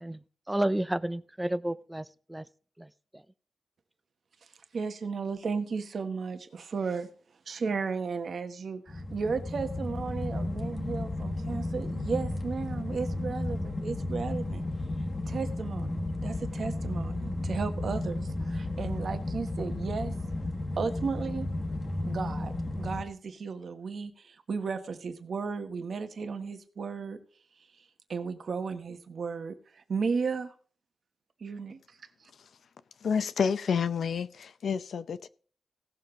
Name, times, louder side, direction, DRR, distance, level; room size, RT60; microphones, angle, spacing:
voice 1, 0.5-2.4 2.8-2.9, right 1 dB, 10° right, 0.5 m, -31 dB
voice 2, 4.7-7.1 7.5-14.6 15.3-20.1 20.7-21.5 22.0-27.2 28.1-30.5 31.4-32.3, right 5 dB, 60° right, 1.2 m, -34 dB
sound 1, 8.9-23.0, left 2 dB, 30° left, 1.4 m, -33 dB
voice 3, 33.0-35.3, left 6 dB, 75° left, 0.7 m, -29 dB
17.5 x 7.0 x 3.8 m
wide cardioid pair, 140°, 0 cm